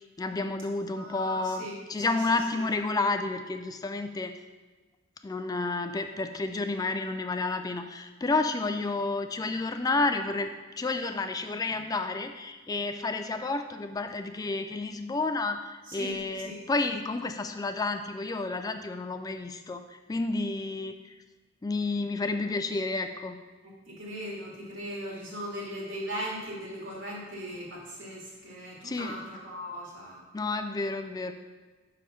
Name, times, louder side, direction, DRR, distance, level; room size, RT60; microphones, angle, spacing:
voice 1, 0.2-4.4 5.2-19.8 20.1-21.0 21.6-23.4 28.8-29.2 30.3-31.3, left 3 dB, 20° left, 8 dB, 0.3 m, -30 dB
voice 2, 1.0-2.2 15.9-16.2 16.4-16.6 23.9-30.2, equal, 75° right, -4 dB, 2.6 m, -38 dB
5.7 x 5.4 x 6.3 m, 1.3 s
head